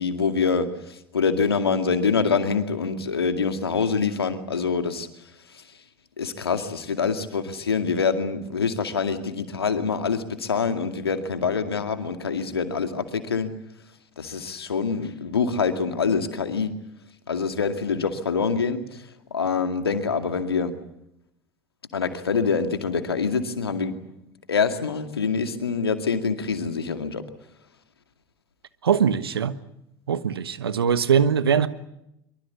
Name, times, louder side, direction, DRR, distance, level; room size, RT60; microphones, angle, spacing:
voice 1, 0.0-5.1 6.2-13.5 14.2-16.7 17.3-19.0 19.3-20.7 21.9-23.9 24.5-27.2, left 5 dB, 85° left, 8 dB, 2.2 m, -25 dB
voice 2, 28.8-29.6 30.1-31.7, right 7 dB, 85° right, 14 dB, 1.3 m, -21 dB
24.0 x 24.0 x 8.5 m, 0.82 s
figure-of-eight pair, 70°, 13 cm